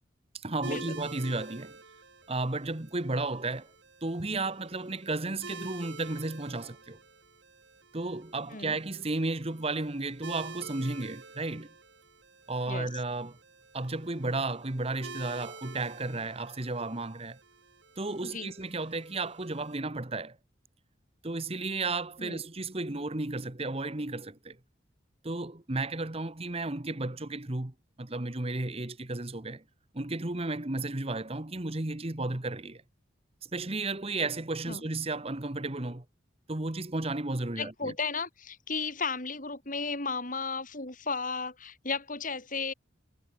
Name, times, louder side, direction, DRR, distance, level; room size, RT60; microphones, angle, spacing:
voice 1, 0.3-1.8 2.3-3.7 4.0-7.0 7.9-11.7 12.5-13.4 13.7-17.4 18.0-20.4 21.2-24.6 25.2-29.6 29.9-32.8 33.5-36.0 36.5-37.9, right 2 dB, 30° right, 1.3 m, -33 dB
sound 1, 0.6-19.8, right 4 dB, 65° right, 5.5 m, -49 dB
voice 2, 18.2-18.5 22.2-22.4 34.7-34.8 37.6-42.7, left 4 dB, 45° left, 4.3 m, -34 dB
head